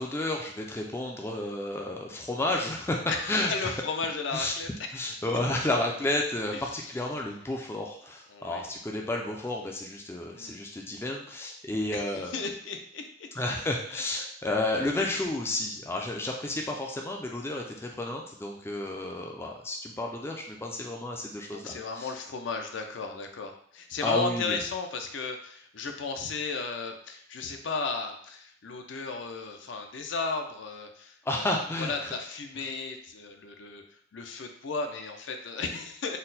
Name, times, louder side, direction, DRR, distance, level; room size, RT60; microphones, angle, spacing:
voice 1, 0.0-3.0 3.3-3.7 4.3-4.5 4.9-12.3 13.4-22.1 24.0-24.6 31.3-32.1, left 2 dB, 10° left, 1 dB, 0.3 m, -31 dB
voice 2, 3.1-4.9 6.5-6.9 8.3-8.7 10.3-10.6 11.9-13.3 13.9-14.0 15.0-15.2 21.5-33.8 34.1-36.2, left 4 dB, 70° left, 5 dB, 0.5 m, -35 dB
4.2 x 2.1 x 3.9 m, 0.64 s
head